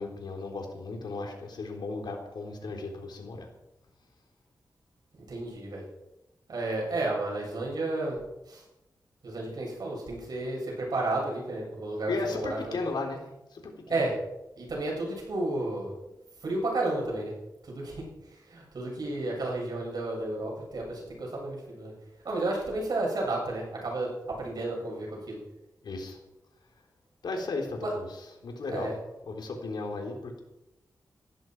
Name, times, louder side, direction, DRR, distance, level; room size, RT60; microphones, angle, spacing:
voice 1, 0.0-3.5 12.1-13.3 13.5-14.0 25.8-26.2 27.2-29.0 29.2-30.4, left 3 dB, 80° left, 2 dB, 3.6 m, -35 dB
voice 2, 5.2-5.8 6.5-8.2 8.5-8.6 9.2-12.7 13.9-14.1 14.6-15.9 16.4-17.3 17.7-18.1 18.5-21.9 22.2-25.4 27.8-27.9 28.7-28.9, right 2 dB, 65° right, -2 dB, 7.4 m, -32 dB
17.5 x 14.0 x 4.7 m, 0.94 s
wide cardioid pair, 115°, 7 cm